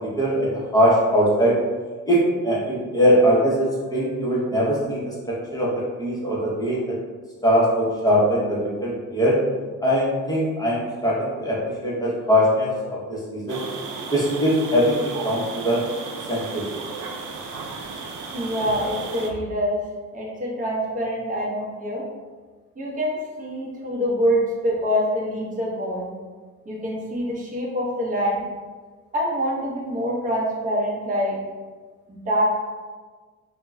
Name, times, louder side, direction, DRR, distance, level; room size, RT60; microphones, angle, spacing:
voice 1, 0.0-1.5 2.1-5.0 5.5-5.7 6.0-6.8 7.4-9.3 9.8-13.6 14.1-15.8 16.3-16.6, equal, 10° left, -7 dB, 0.6 m, -21 dB
sound 1, 13.5-19.3, right 4 dB, 80° right, 0.5 m, -34 dB
voice 2, 18.3-19.8 20.1-22.0 22.8-26.1 26.7-28.4 29.1-31.4 32.1-32.4, equal, 25° right, -4 dB, 0.7 m, -25 dB
2.2 x 2.0 x 3.5 m, 1.4 s
cardioid pair, 130°, 31 cm